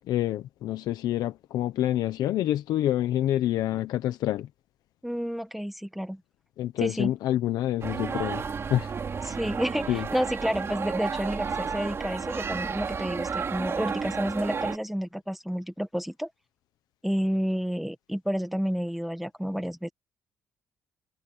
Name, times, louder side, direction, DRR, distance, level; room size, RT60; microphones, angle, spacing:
voice 1, 0.1-4.5 6.6-8.4 8.7-8.9 9.9-10.0, left 13 dB, 85° left, 0.9 m, -27 dB
voice 2, 5.0-6.2 6.8-7.1 9.2-16.3 17.0-19.9, equal, ahead, 1.6 m, -30 dB
sound 1, 7.8-14.8, right 5 dB, 45° right, 2.7 m, -32 dB
cardioid pair, 90°, 7 cm